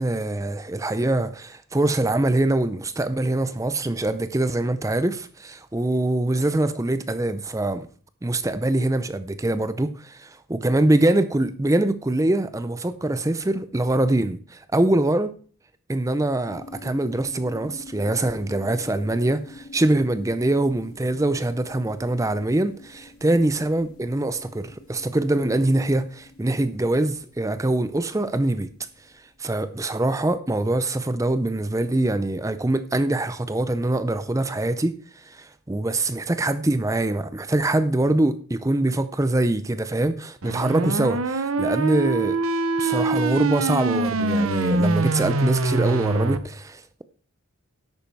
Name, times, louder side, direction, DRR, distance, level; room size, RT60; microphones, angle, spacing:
voice 1, 0.0-7.9 8.2-15.3 15.9-28.7 29.4-42.4 42.8-47.0, right 2 dB, 15° right, 0.5 m, -24 dB
sound 1, 16.5-29.9, left 2 dB, 90° left, 2.8 m, -46 dB
sound 2, 40.4-46.4, right 3 dB, 80° right, 0.9 m, -24 dB
10.5 x 8.7 x 4.6 m
head